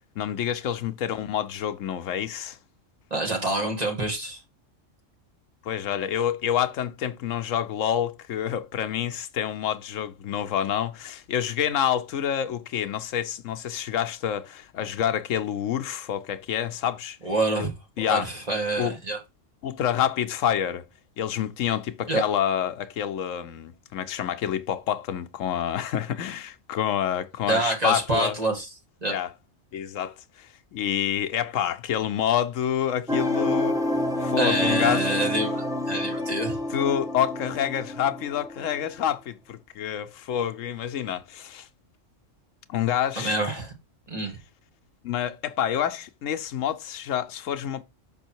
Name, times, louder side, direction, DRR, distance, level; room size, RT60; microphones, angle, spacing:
voice 1, 0.2-2.6 5.6-17.2 17.6-17.7 18.0-18.3 18.8-18.9 19.6-20.8 21.2-28.4 29.1-29.3 29.7-33.8 34.2-35.1 36.7-41.7 42.7-43.3 45.0-47.8, left 9 dB, 80° left, 1.0 m, -28 dB
voice 2, 3.1-4.4 17.2-17.7 18.1-19.2 22.1-22.2 27.5-28.7 29.0-29.1 34.4-36.6 43.2-43.7 44.1-44.4, right 2 dB, 30° right, 2.3 m, -26 dB
sound 1, 33.1-38.9, left 1 dB, 5° right, 0.9 m, -28 dB
6.2 x 5.4 x 4.5 m
omnidirectional pair, 1.3 m